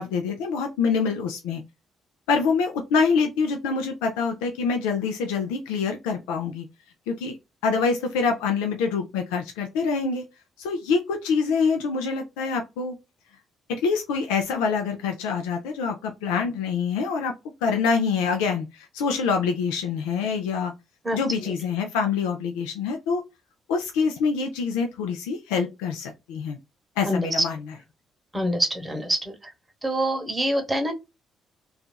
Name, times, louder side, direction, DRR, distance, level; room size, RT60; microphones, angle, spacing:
voice 1, 0.0-1.6 2.3-6.7 7.1-7.4 7.6-10.2 10.6-12.9 13.7-17.3 17.6-20.7 21.1-23.2 23.7-26.6 27.0-27.7, left 5 dB, 75° left, 3 dB, 0.4 m, -25 dB
voice 2, 28.3-29.3 29.8-30.9, right 1 dB, 20° right, 5 dB, 1.0 m, -25 dB
2.7 x 2.4 x 2.2 m, 0.24 s
hypercardioid pair, 45°, 0 cm